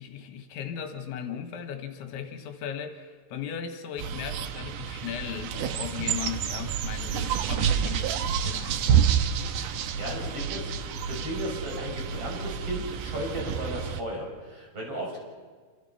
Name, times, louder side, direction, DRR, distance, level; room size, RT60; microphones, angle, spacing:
voice 1, 0.0-9.0 10.0-10.4, left 8 dB, 80° left, 6 dB, 3.8 m, -37 dB
sound 1, 4.0-14.0, right 8 dB, 80° right, 1.9 m, -29 dB
voice 2, 10.0-15.2, equal, 30° right, 0 dB, 7.4 m, -35 dB
27.5 x 27.5 x 5.7 m, 1.5 s
omnidirectional pair, 5.4 m